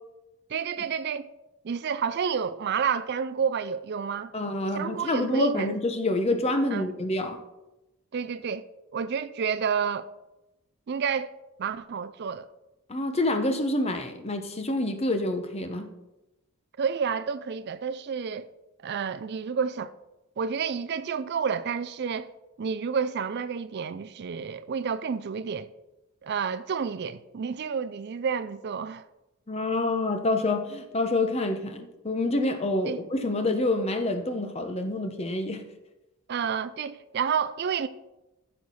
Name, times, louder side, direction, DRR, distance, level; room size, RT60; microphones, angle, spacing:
voice 1, 0.5-1.3 1.6-4.3 4.7-5.8 6.7-6.9 8.1-8.7 8.9-10.1 10.9-11.3 11.6-12.5 16.8-18.5 18.8-19.9 20.4-22.3 22.6-25.7 26.2-29.0 32.9-33.0 36.3-37.9, right 6 dB, 50° right, 0.4 m, -30 dB
voice 2, 4.3-7.4 12.9-15.9 29.5-35.6, left 2 dB, 30° left, 0.9 m, -27 dB
14.0 x 6.5 x 4.2 m
head